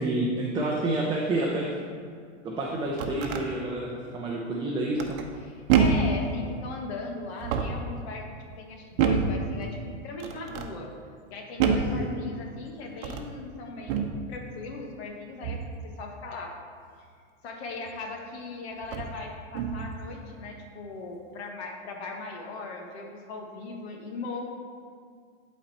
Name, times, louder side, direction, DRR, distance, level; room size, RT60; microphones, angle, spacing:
voice 1, 0.0-1.9 2.4-5.1 11.9-12.2, right 2 dB, 15° right, -3 dB, 0.6 m, -29 dB
sound 1, 2.7-3.5 5.0-5.4 5.7-6.2 7.3-7.9 9.0-9.4 10.2-10.7 11.6-12.0 12.9-13.3 13.9-14.2 15.4-15.7 17.9-18.0 18.8-19.2 19.5-19.9, right 6 dB, 50° right, 0.8 m, -26 dB
voice 2, 5.4-8.3 8.6-10.9 11.3-15.6 15.8-16.5 17.0-17.1 17.4-24.5, left 3 dB, 60° left, 1 dB, 1.6 m, -39 dB
11.0 x 4.3 x 4.2 m, 2.1 s
hypercardioid pair, 135°, 36 cm